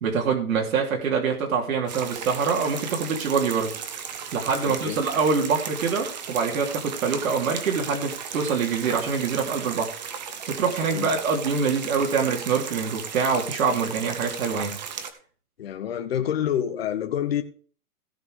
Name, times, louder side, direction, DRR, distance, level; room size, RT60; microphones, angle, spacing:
voice 1, 0.0-3.8 4.3-9.9 10.5-14.8, right 5 dB, 60° right, 0 dB, 3.1 m, -25 dB
sound 1, 1.9-15.1, right 7 dB, 30° right, 1.0 m, -36 dB
voice 2, 4.6-5.0 10.9-11.1 15.6-17.4, left 10 dB, 40° left, 7 dB, 1.2 m, -27 dB
16.5 x 6.0 x 4.8 m, 0.41 s
hypercardioid pair, 180°, 46 cm